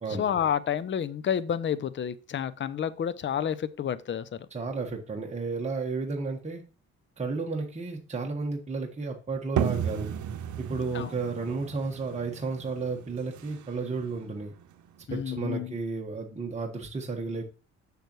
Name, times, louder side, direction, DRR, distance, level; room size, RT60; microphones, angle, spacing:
voice 1, 0.1-4.4 10.9-11.1 15.1-15.7, left 8 dB, 40° left, 0.6 m, -30 dB
voice 2, 4.5-6.6 7.2-10.1 10.6-14.5 15.1-17.4, right 4 dB, 20° right, 1.3 m, -33 dB
sound 1, 9.6-15.0, right 9 dB, 75° right, 0.8 m, -34 dB
6.6 x 6.6 x 3.1 m
cardioid pair, 90°, 30 cm